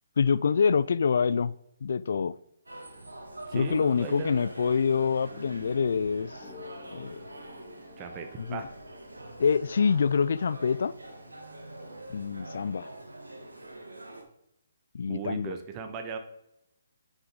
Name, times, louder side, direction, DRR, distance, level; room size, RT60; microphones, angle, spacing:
voice 1, 0.2-1.5 1.8-2.3 3.5-6.5 6.9-7.2 8.4-8.6 9.4-10.9 12.1-12.9 14.9-15.5, left 6 dB, 60° left, 0.3 m, -26 dB
sound 1, 2.6-14.2, right 1 dB, 90° right, 1.8 m, -45 dB
voice 2, 3.5-4.4 8.0-8.7 15.1-16.2, right 5 dB, 25° right, 1.1 m, -37 dB
sound 2, 5.3-10.4, left 5 dB, 20° left, 2.9 m, -52 dB
9.4 x 6.2 x 3.9 m
figure-of-eight pair, 140°, 0 cm